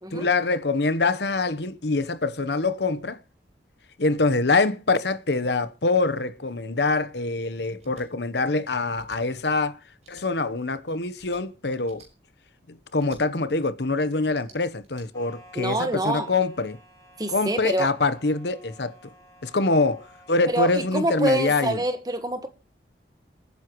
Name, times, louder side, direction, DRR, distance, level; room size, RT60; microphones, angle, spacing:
voice 1, 0.1-3.2 4.0-9.8 10.1-12.0 12.7-16.8 17.3-19.1 19.4-21.8, left 3 dB, 70° left, 1.0 m, -25 dB
sound 1, 7.8-8.1 8.9-9.2 10.0-10.3 11.2-11.4 11.8-12.1 13.0-13.2 14.2-15.0, right 3 dB, 40° right, 5.4 m, -52 dB
sound 2, 15.1-21.1, equal, 20° left, 3.6 m, -53 dB
voice 2, 15.5-16.3 17.2-17.9 20.4-22.5, right 1 dB, 20° right, 1.5 m, -26 dB
27.5 x 9.8 x 3.1 m
head